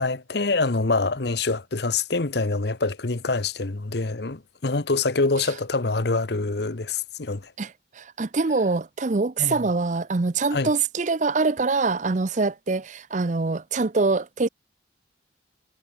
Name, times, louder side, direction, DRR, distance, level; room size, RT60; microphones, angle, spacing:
voice 1, 0.0-7.5 9.4-9.5 10.5-10.7, left 3 dB, 55° left, 1.0 m, -25 dB
voice 2, 7.6-14.5, right 3 dB, 40° right, 0.6 m, -24 dB
head